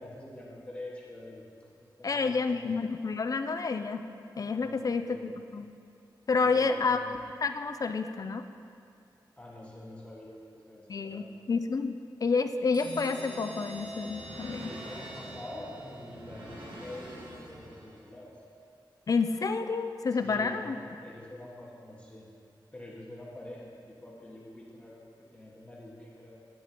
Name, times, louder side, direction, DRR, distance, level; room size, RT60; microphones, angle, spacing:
voice 1, 0.0-1.4 1.7-2.8 4.6-5.2 6.4-7.1 9.4-11.3 14.6-18.3 20.1-22.3 22.7-25.1 25.3-26.4, left 1 dB, 15° left, -5 dB, 1.6 m, -46 dB
voice 2, 2.0-4.0 4.4-5.7 6.3-7.0 7.4-8.4 10.9-14.7 19.1-20.8, left 4 dB, 45° left, 8 dB, 0.4 m, -29 dB
sound 1, 12.7-16.3, right 1 dB, 90° right, 1.5 m, -44 dB
sound 2, 13.3-18.1, right 1 dB, 75° right, 1.7 m, -48 dB
9.8 x 9.3 x 2.9 m, 2.4 s
wide cardioid pair, 100°, 8 cm